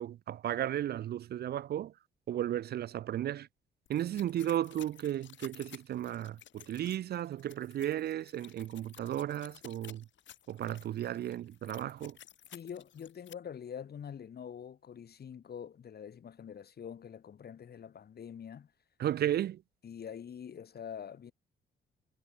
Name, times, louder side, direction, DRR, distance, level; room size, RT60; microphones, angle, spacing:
voice 1, 0.0-1.9 2.3-3.5 3.9-10.0 10.5-12.2 19.0-19.6, right 11 dB, 55° right, 0.4 m, -34 dB
sound 1, 3.9-13.3, left 11 dB, 70° left, 2.2 m, -55 dB
voice 2, 12.5-18.7 19.8-21.3, left 8 dB, 55° left, 3.9 m, -45 dB
cardioid pair, 90°, 20 cm